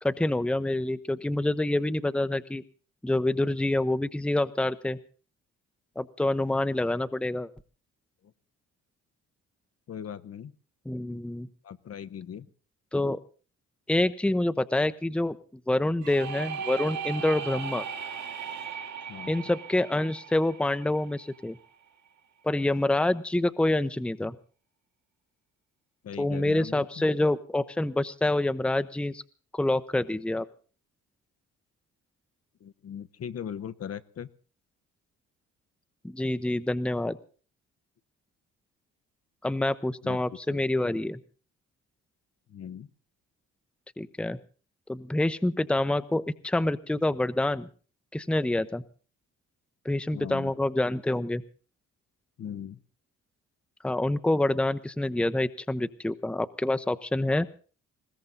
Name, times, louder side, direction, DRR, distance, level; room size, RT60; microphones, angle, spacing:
voice 1, 0.0-2.6 3.0-5.0 6.0-7.5 10.9-11.5 12.9-13.2 13.9-15.4 15.7-17.8 19.3-21.6 22.4-24.3 26.2-29.2 29.5-30.4 36.0-37.2 39.4-41.2 44.0-44.4 44.9-47.7 48.1-48.8 49.8-51.4 53.8-57.5, left 1 dB, 5° left, 12 dB, 0.8 m, -27 dB
voice 2, 9.9-10.5 11.6-12.5 19.1-19.5 26.0-26.9 32.6-34.3 40.0-40.2 40.5-40.6 42.5-42.9 50.1-50.5 52.4-52.8, left 8 dB, 50° left, 12 dB, 0.9 m, -39 dB
sound 1, 16.0-21.7, right 6 dB, 65° right, 2.5 m, -37 dB
20.5 x 16.5 x 4.0 m, 0.39 s
cardioid pair, 90°, 30 cm